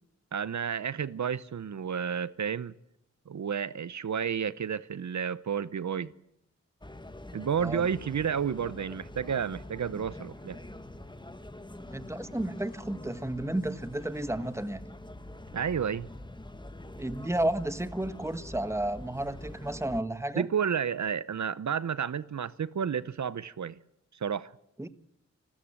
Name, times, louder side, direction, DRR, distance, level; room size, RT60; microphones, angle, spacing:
voice 1, 0.3-2.7 3.3-6.1 7.3-10.6 15.5-16.1 20.4-23.8 24.2-24.5, right 7 dB, 75° right, 0.8 m, -31 dB
sound 1, 6.8-20.0, left 1 dB, 15° left, 1.6 m, -45 dB
voice 2, 11.9-14.8 17.0-20.5 24.8-24.9, right 1 dB, 10° right, 1.3 m, -32 dB
28.0 x 13.5 x 8.8 m
wide cardioid pair, 75°, 29 cm